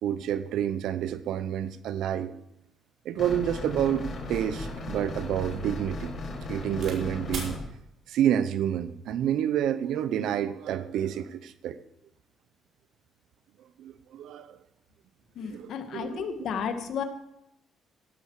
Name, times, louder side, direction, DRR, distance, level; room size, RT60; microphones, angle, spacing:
voice 1, 0.0-2.3 3.0-6.1 6.5-7.6 8.1-11.8 13.8-14.6 15.4-16.3, right 10 dB, 80° right, 13 dB, 0.7 m, -29 dB
sound 1, 3.2-7.6, left 2 dB, 45° left, 6.2 m, -36 dB
sound 2, 4.2-7.0 7.3-7.6 8.4-8.8, right 4 dB, 60° right, 4.6 m, -43 dB
voice 2, 15.4-17.0, left 7 dB, 70° left, 7 dB, 1.9 m, -33 dB
16.0 x 12.5 x 4.9 m, 0.80 s
cardioid pair, 100°, 0 cm